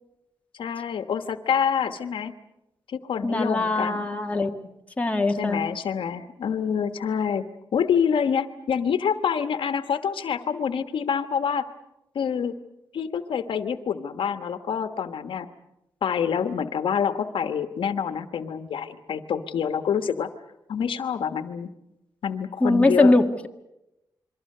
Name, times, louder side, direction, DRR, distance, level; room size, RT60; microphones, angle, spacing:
voice 1, 0.5-2.3 2.9-4.1 5.4-7.4 7.7-11.7 12.1-12.6 12.9-15.5 16.0-20.3 20.7-21.7 22.2-23.1, left 7 dB, 85° left, 9 dB, 1.2 m, -26 dB
voice 2, 3.2-4.7 5.0-5.6 22.6-23.5, left 2 dB, 15° left, 3 dB, 1.7 m, -21 dB
28.0 x 23.0 x 6.6 m, 0.89 s
wide cardioid pair, 160°, 9 cm